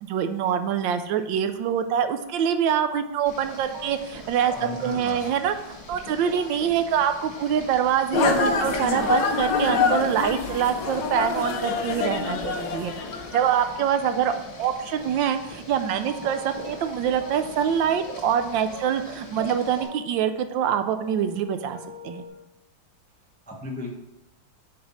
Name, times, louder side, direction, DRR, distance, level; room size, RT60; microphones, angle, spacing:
voice 1, 0.0-12.9 13.3-14.3 14.6-21.8 22.0-22.2, right 8 dB, 75° right, 9 dB, 1.2 m, -25 dB
Boiling, 3.3-19.9, left 1 dB, 85° left, 2.5 m, -42 dB
sound 1, 3.7-6.1 6.4-6.8 7.1-7.5 7.8-8.7 8.9-11.0 11.2-22.3, right 1 dB, 35° right, 2.2 m, -45 dB
voice 2, 4.5-5.4 23.5-24.0, left 1 dB, 10° left, -1 dB, 0.5 m, -35 dB
sound 2, 8.1-13.7, left 5 dB, 70° left, 1.3 m, -26 dB
6.3 x 4.3 x 5.5 m, 0.87 s
omnidirectional pair, 2.1 m